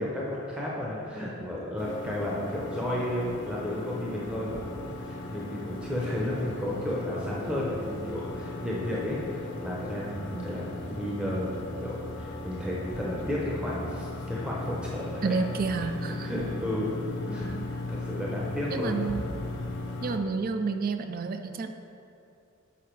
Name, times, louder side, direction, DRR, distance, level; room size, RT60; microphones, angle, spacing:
voice 1, 0.0-15.4 16.1-17.0 17.3-17.6 17.9-19.0 19.6-19.8, left 1 dB, 5° right, -5 dB, 0.7 m, -33 dB
sound 1, 1.8-20.2, left 2 dB, 55° left, 0.7 m, -37 dB
voice 2, 15.2-16.3 18.7-19.2 20.0-21.7, right 4 dB, 45° right, 7 dB, 0.4 m, -30 dB
7.1 x 4.6 x 4.5 m, 2.6 s
head